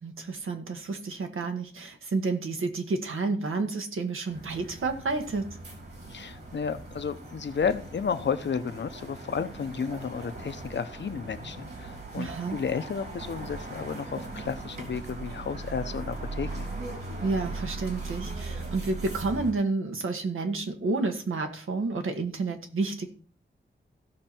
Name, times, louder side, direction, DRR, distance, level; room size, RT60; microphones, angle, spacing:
voice 1, 0.0-5.5 12.2-12.6 17.2-23.1, right 3 dB, 85° right, 5 dB, 1.7 m, -30 dB
sound 1, 4.3-19.5, right 2 dB, 55° right, 3.2 m, -39 dB
voice 2, 6.1-16.7, left 6 dB, 60° left, 10 dB, 0.9 m, -32 dB
15.5 x 5.9 x 4.5 m, 0.41 s
wide cardioid pair, 165°, 21 cm